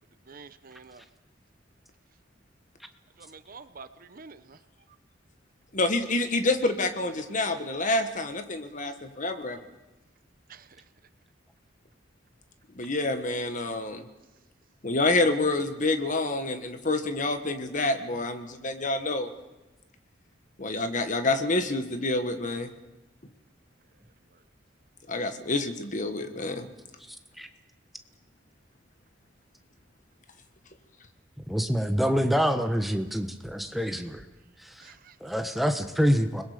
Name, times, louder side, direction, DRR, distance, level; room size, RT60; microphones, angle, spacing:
voice 1, 0.3-1.0 3.2-4.6 10.5-10.8 34.8-35.3, right 4 dB, 45° right, 0.8 m, -48 dB
voice 2, 5.7-9.6 12.8-14.1 14.8-19.3 20.6-22.7 25.1-26.7, left 2 dB, 40° left, 1.6 m, -27 dB
voice 3, 31.5-34.2 34.6-34.9 35.2-36.4, equal, ahead, 1.3 m, -26 dB
29.5 x 21.5 x 5.2 m
head